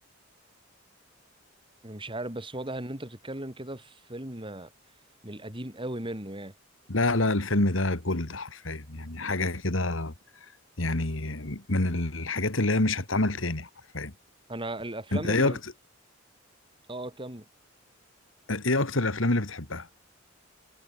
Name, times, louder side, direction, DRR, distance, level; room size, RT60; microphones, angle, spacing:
voice 1, 1.8-4.7 5.2-6.5 14.5-15.6 16.9-17.5, right 1 dB, 25° right, 5.8 m, -36 dB
voice 2, 6.9-10.1 10.8-13.7 13.9-14.1 15.1-15.6 18.5-19.9, left 2 dB, 80° left, 2.6 m, -27 dB
head